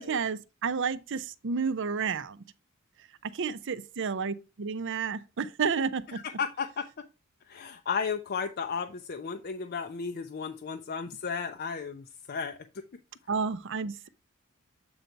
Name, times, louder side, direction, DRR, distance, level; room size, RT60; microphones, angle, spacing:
voice 1, 0.0-2.4 3.2-6.2 13.3-14.1, right 5 dB, 60° right, 0.6 m, -31 dB
voice 2, 6.1-6.8 7.5-12.6, left 6 dB, 45° left, 0.5 m, -34 dB
7.8 x 4.0 x 4.5 m
head